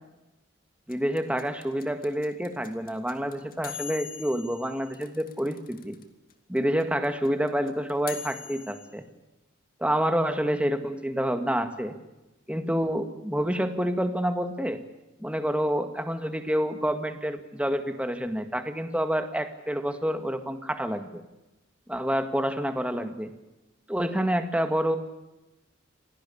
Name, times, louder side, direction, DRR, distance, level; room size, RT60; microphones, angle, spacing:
sound 1, 0.9-6.0 6.3-6.4 6.6-8.9, left 8 dB, 45° left, 2.6 m, -41 dB
voice 1, 0.9-6.0 6.5-9.0 9.8-11.9 12.5-14.8 15.2-21.2 21.9-23.3 23.9-25.0, equal, 5° right, 8 dB, 2.0 m, -28 dB
27.5 x 18.0 x 8.7 m, 0.99 s
head